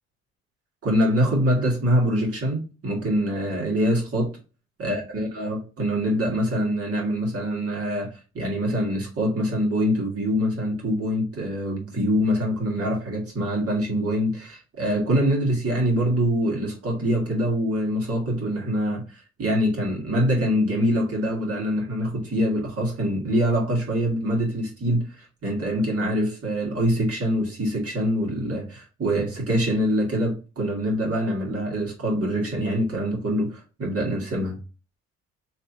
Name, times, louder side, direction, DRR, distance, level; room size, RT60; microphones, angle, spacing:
voice 1, 0.8-4.3 4.8-8.1 8.3-19.0 19.4-34.6, equal, 45° right, 1.8 m, -24 dB
3.2 x 2.8 x 3.8 m
cardioid pair, 90°, 31 cm